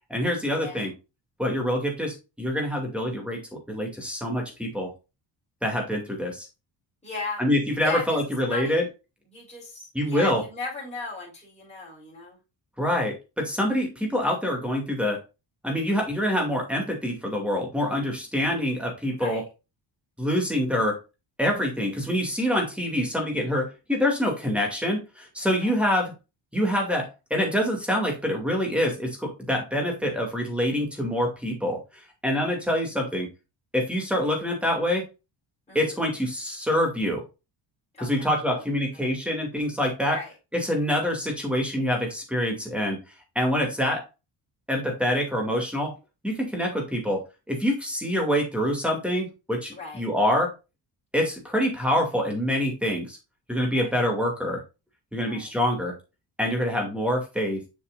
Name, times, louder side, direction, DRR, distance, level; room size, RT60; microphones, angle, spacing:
voice 1, 0.1-0.9 1.4-4.9 5.6-6.5 7.4-8.8 9.9-10.4 12.8-15.2 15.6-19.4 20.2-21.0 21.4-26.1 26.5-31.8 32.2-33.3 33.7-35.0 35.7-37.2 38.0-40.2 40.5-43.0 43.3-44.0 44.7-45.9 46.2-47.2 47.5-50.5 51.1-53.2 53.5-54.6 55.1-55.9 56.4-57.6, equal, 5° right, 1 dB, 2.4 m, -26 dB
voice 2, 7.0-7.4 7.8-8.2 8.5-8.8 9.3-12.4 19.1-19.5 25.5-25.7 35.7-36.0 37.9-38.6 38.9-39.1 40.1-40.3 49.7-50.0 53.7-53.9 55.3-55.5, left 3 dB, 15° left, -7 dB, 4.3 m, -37 dB
7.1 x 6.6 x 2.5 m, 0.27 s
cardioid pair, 145°, 44 cm